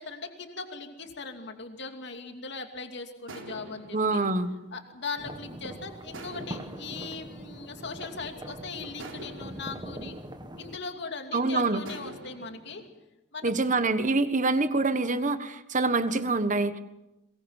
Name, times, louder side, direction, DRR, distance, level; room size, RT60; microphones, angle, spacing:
voice 1, 0.0-4.2 4.7-10.2 10.6-12.9 13.3-13.5, left 4 dB, 65° left, 5 dB, 2.7 m, -39 dB
sound 1, 3.3-5.5 6.1-8.3 9.0-11.2 11.8-12.9, right 2 dB, 90° right, 3.8 m, -47 dB
voice 2, 3.9-4.5 11.3-11.8 13.4-16.8, right 3 dB, 40° right, 11 dB, 1.4 m, -25 dB
sound 2, 5.2-10.8, right 1 dB, 25° right, 1.8 m, -42 dB
22.5 x 22.0 x 7.4 m, 0.97 s
head